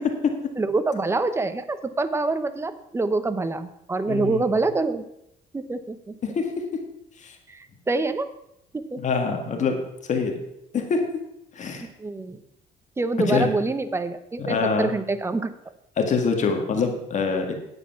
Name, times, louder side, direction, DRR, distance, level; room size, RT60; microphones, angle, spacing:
voice 1, 0.6-5.1 5.5-6.2 7.5-8.3 8.7-9.0 11.8-12.4 13.0-15.5, right 3 dB, 15° right, 11 dB, 0.8 m, -26 dB
voice 2, 4.1-4.5 6.2-6.6 7.2-7.4 9.0-9.8 10.1-10.4 10.7-11.1 11.5-11.9 13.2-13.5 14.4-14.9 16.0-17.5, left 5 dB, 45° left, 4 dB, 1.8 m, -25 dB
9.9 x 8.2 x 5.8 m, 0.80 s
cardioid pair, 110°, 17 cm